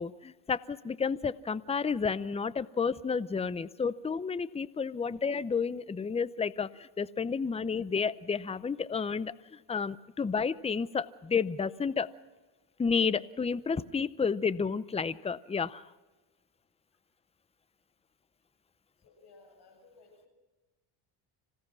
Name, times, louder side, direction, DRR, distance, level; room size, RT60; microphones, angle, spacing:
voice 1, 0.0-12.1 12.8-15.8, left 5 dB, 15° left, 17 dB, 0.6 m, -31 dB
voice 2, 19.0-20.3, left 3 dB, 55° left, 4 dB, 7.8 m, -58 dB
26.0 x 17.0 x 6.2 m, 1.2 s
cardioid pair, 95°, 49 cm